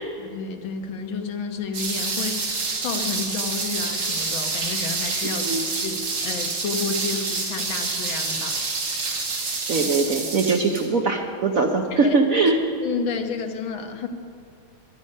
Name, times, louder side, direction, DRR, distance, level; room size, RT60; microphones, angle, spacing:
voice 1, 0.2-5.5 5.8-8.6 11.9-12.2 12.8-14.1, left 5 dB, 75° left, 6 dB, 1.9 m, -31 dB
sound 1, 1.7-10.9, right 3 dB, 75° right, 2.9 m, -27 dB
voice 2, 9.7-12.6, right 3 dB, 55° right, 3 dB, 1.0 m, -21 dB
21.5 x 11.5 x 5.4 m, 2.5 s
omnidirectional pair, 2.3 m